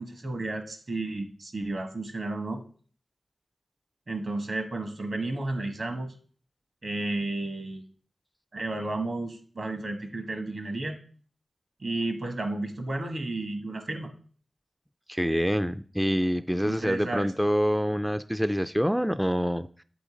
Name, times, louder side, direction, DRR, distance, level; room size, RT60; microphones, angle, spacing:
voice 1, 0.0-2.6 4.1-6.1 6.8-7.8 8.5-11.0 11.8-14.1 16.6-17.3, right 2 dB, 65° right, 1.4 m, -32 dB
voice 2, 15.1-19.8, equal, 5° right, 0.4 m, -26 dB
7.9 x 3.9 x 5.0 m
cardioid pair, 40°, 0 cm